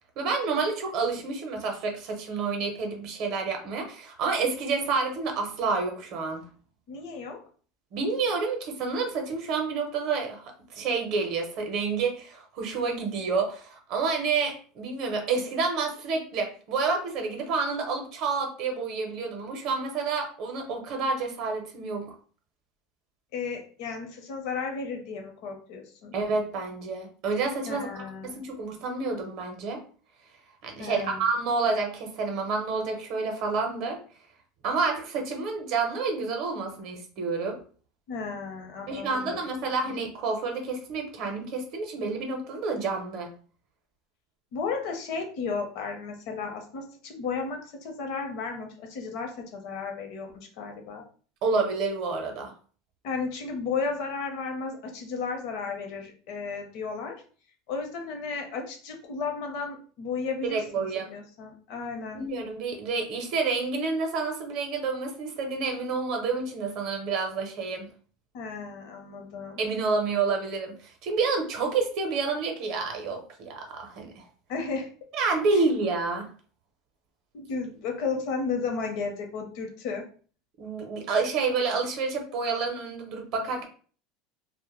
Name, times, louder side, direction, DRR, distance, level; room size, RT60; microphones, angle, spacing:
voice 1, 0.2-6.4 7.9-22.1 26.1-29.8 30.6-34.0 34.6-37.6 38.9-43.3 51.4-52.5 60.4-61.1 62.1-67.9 69.6-74.2 75.1-76.3 80.6-83.7, right 4 dB, 45° right, 3 dB, 0.6 m, -29 dB
voice 2, 6.9-7.4 23.3-26.1 27.7-28.4 30.8-31.2 38.1-39.4 39.8-40.0 44.5-50.3 50.6-51.0 53.0-57.2 57.7-62.2 68.3-69.6 74.5-74.9 75.5-75.6 77.3-80.0, left 5 dB, 55° left, 3 dB, 0.6 m, -34 dB
2.1 x 2.0 x 3.0 m, 0.42 s
supercardioid pair, 165°, 0 cm